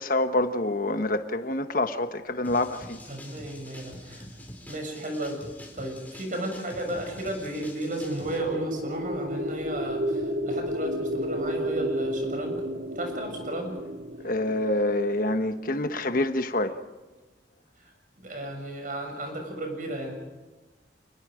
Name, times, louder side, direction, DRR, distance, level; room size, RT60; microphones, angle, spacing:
voice 1, 0.0-3.0 14.2-16.8, left 2 dB, 50° left, 1.3 m, -26 dB
sound 1, 2.4-8.4, left 1 dB, 10° left, 4.8 m, -45 dB
voice 2, 3.1-4.2 4.7-5.4 5.7-12.6 13.0-13.8 17.8-17.9 18.2-20.1, right 1 dB, 50° right, 6.9 m, -34 dB
sound 2, 7.6-15.7, equal, 90° right, 2.0 m, -32 dB
28.5 x 21.0 x 5.2 m
head